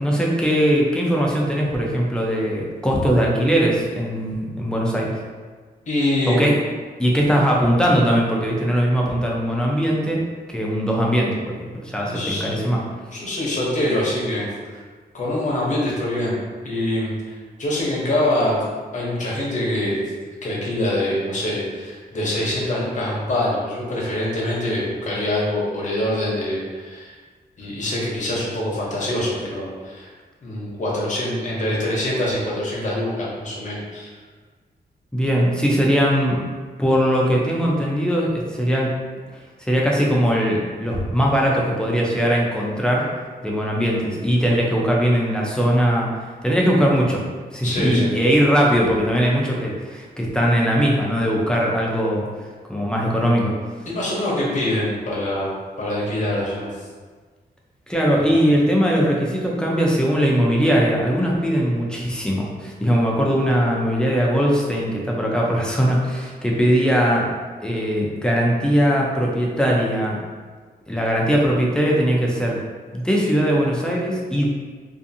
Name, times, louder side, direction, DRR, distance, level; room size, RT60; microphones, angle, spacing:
voice 1, 0.0-5.2 6.3-6.6 7.0-10.2 10.5-12.8 35.1-36.4 36.8-38.9 39.6-43.1 43.4-46.1 46.4-47.2 47.5-52.3 52.7-53.5 57.9-67.2 67.6-70.2 70.9-72.6 72.9-74.5, equal, 5° left, -3 dB, 0.4 m, -20 dB
voice 2, 5.9-6.5 12.0-12.6 13.1-14.8 15.1-18.7 18.9-20.0 20.4-27.1 27.6-30.1 30.4-34.1 47.6-48.1 53.9-55.5 55.8-56.7 58.2-58.4, left 1 dB, 50° left, -5 dB, 0.8 m, -24 dB
2.5 x 2.5 x 2.6 m, 1.5 s
wide cardioid pair, 130°, 17 cm